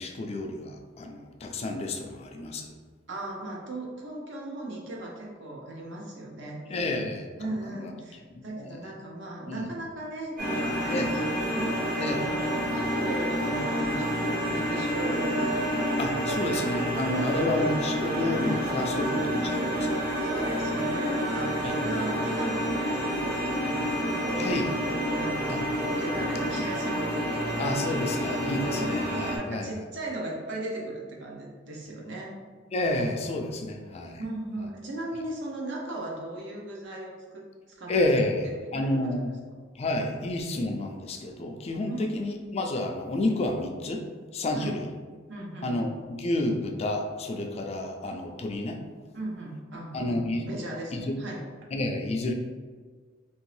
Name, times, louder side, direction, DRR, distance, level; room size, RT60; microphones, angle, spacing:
voice 1, 0.0-2.7 6.7-7.3 7.7-7.9 8.3-8.8 9.5-9.7 10.9-11.1 12.0-12.2 16.0-19.9 21.6-21.8 22.2-22.3 24.4-24.6 25.5-25.6 27.6-29.9 32.7-34.2 37.9-38.5 38.7-39.3 39.8-44.0 44.3-44.9 45.6-48.8 49.9-50.5 50.9-51.2 51.7-52.3, left 1 dB, 30° left, 3 dB, 0.3 m, -30 dB
voice 2, 3.1-6.8 7.4-11.8 12.0-12.4 12.7-15.8 17.1-17.7 20.2-24.6 25.0-25.6 26.0-27.2 27.5-27.6 29.3-32.3 34.2-37.4 37.8-37.9 38.6-39.1 41.9-42.1 44.5-44.8 45.3-45.7 47.6-47.7 49.1-51.4, right 1 dB, 65° right, -2 dB, 0.7 m, -37 dB
sound 1, 10.4-29.4, equal, 45° right, 1.0 m, -28 dB
2.9 x 2.6 x 3.1 m, 1.5 s
head